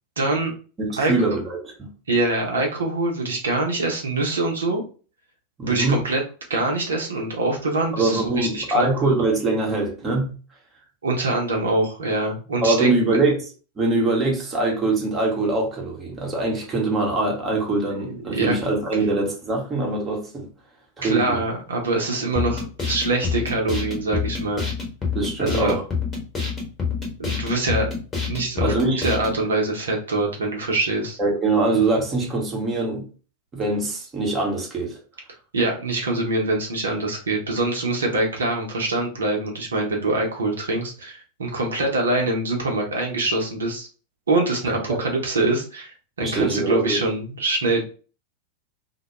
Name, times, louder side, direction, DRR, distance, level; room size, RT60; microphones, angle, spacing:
voice 1, 0.2-0.5 0.9-1.1 2.1-4.8 5.6-6.2 6.5-8.9 11.0-13.2 18.0-18.5 21.0-24.7 25.4-25.8 27.2-27.9 28.3-31.2 35.5-43.9 44.3-47.8, right 2 dB, 70° right, 0.7 m, -24 dB
voice 2, 0.8-1.9 5.6-6.0 7.9-10.3 12.6-13.4 13.8-20.5 21.0-21.4 25.1-25.8 28.6-29.0 31.2-33.1 33.5-35.0 44.9-45.0 46.2-47.0, right 2 dB, 20° right, 0.8 m, -23 dB
sound 1, 22.4-29.4, left 5 dB, 20° left, 0.9 m, -27 dB
2.2 x 2.1 x 3.0 m
figure-of-eight pair, 90°, 0 cm